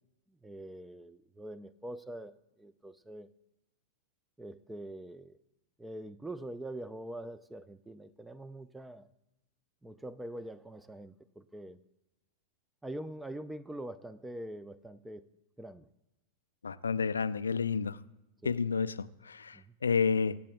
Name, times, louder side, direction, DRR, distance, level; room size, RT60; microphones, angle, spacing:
voice 1, 0.4-2.3 2.6-3.3 4.4-5.4 5.8-9.1 9.8-11.8 12.8-15.3 15.6-15.9 18.4-18.6 19.5-19.7, right 1 dB, 5° right, 0.5 m, -44 dB
voice 2, 16.6-18.0 18.4-20.4, left 5 dB, 75° left, 0.3 m, -30 dB
24.5 x 8.3 x 2.3 m
figure-of-eight pair, 90°, 0 cm